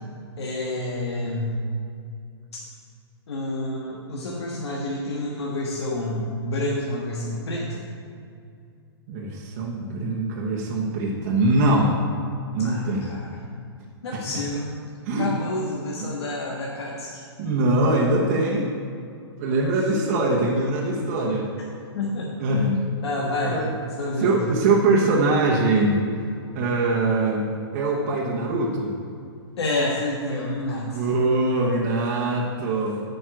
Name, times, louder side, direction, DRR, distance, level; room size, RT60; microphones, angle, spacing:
voice 1, 0.4-1.5 2.5-2.6 3.3-7.9 12.6-13.4 14.0-14.7 15.2-17.2 21.9-23.6 24.0-24.4 29.6-31.0, left 2 dB, 75° left, -3 dB, 1.5 m, -28 dB
voice 2, 9.1-11.9 12.5-13.1 14.1-14.2 15.1-15.3 16.0-16.1 17.4-18.7 19.4-21.5 22.4-22.7 23.5-23.7 24.2-26.0 26.5-28.9 30.8-33.0, right 2 dB, 30° right, -3 dB, 1.1 m, -22 dB
9.2 x 5.4 x 6.3 m, 2.4 s
hypercardioid pair, 165°, 14 cm